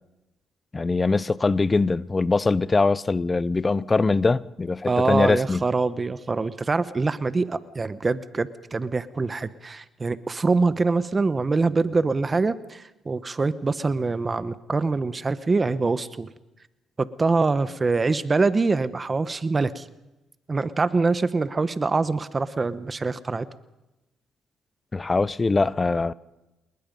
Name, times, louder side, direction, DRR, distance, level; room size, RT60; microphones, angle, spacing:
voice 1, 0.7-5.6 24.9-26.1, left 3 dB, 25° left, 0.6 m, -22 dB
voice 2, 4.9-16.3 17.0-19.8 20.5-23.5, right 3 dB, 30° right, 1.0 m, -24 dB
27.5 x 21.0 x 5.3 m
cardioid pair, 90°, 0 cm